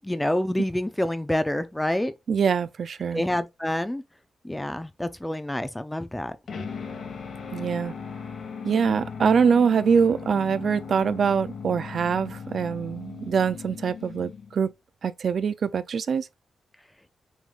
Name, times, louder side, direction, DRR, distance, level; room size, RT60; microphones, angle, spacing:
voice 1, 0.0-2.1 3.1-4.0 4.4-6.4, left 1 dB, 10° left, 0.4 m, -27 dB
voice 2, 2.3-3.2 7.5-7.9 8.6-14.7 15.0-16.3, right 6 dB, 55° right, 0.4 m, -24 dB
sound 1, 6.5-14.7, left 6 dB, 65° left, 1.4 m, -38 dB
6.2 x 3.5 x 2.4 m
wide cardioid pair, 130°, 0 cm